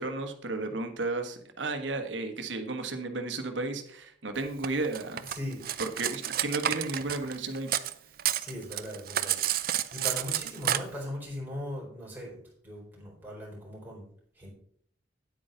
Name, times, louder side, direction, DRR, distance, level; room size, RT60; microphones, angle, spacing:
voice 1, 0.0-5.3 5.8-7.7, right 2 dB, 80° right, 6 dB, 1.3 m, -33 dB
Cutlery silverware, 4.6-7.9 8.2-10.8, right 11 dB, 50° right, 0.5 m, -30 dB
voice 2, 5.3-5.6 7.1-7.2 8.4-9.4 9.9-14.1 14.3-14.5, equal, 10° right, -4 dB, 4.2 m, -39 dB
9.5 x 8.5 x 3.9 m, 0.63 s
head